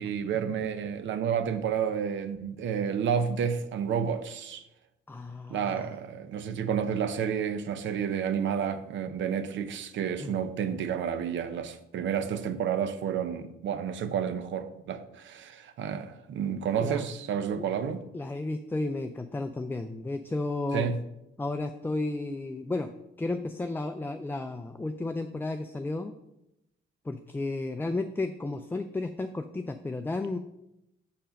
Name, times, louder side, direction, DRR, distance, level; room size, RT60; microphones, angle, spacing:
voice 1, 0.0-4.6 5.5-18.0 20.7-21.0, right 7 dB, 70° right, 0.7 m, -30 dB
voice 2, 5.1-5.9 10.2-10.4 16.8-17.0 17.6-17.7 18.1-20.9 21.4-22.9 23.2-26.1 27.1-30.4, left 2 dB, 10° left, 0.4 m, -33 dB
7.4 x 4.5 x 5.2 m
cardioid pair, 90°, 20 cm